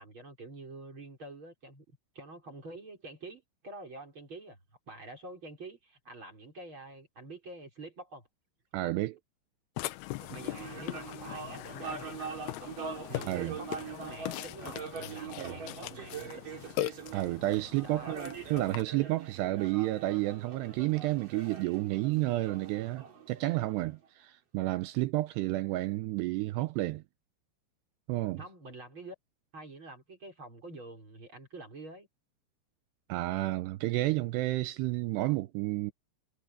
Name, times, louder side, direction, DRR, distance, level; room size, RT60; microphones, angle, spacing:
voice 1, 0.0-1.8 2.1-4.6 4.9-8.3 10.3-12.2 13.1-16.4 17.8-18.1 28.4-29.1 29.5-32.1, right 2 dB, 25° right, 5.2 m, -47 dB
voice 2, 8.7-9.2 13.3-13.6 15.4-15.6 17.1-27.0 28.1-28.4 33.1-35.9, right 18 dB, 80° right, 2.6 m, -31 dB
Burping eructation, 9.8-18.8, left 16 dB, 75° left, 2.5 m, -40 dB
sound 1, 10.2-23.9, right 5 dB, 50° right, 5.4 m, -43 dB
omnidirectional pair, 5.2 m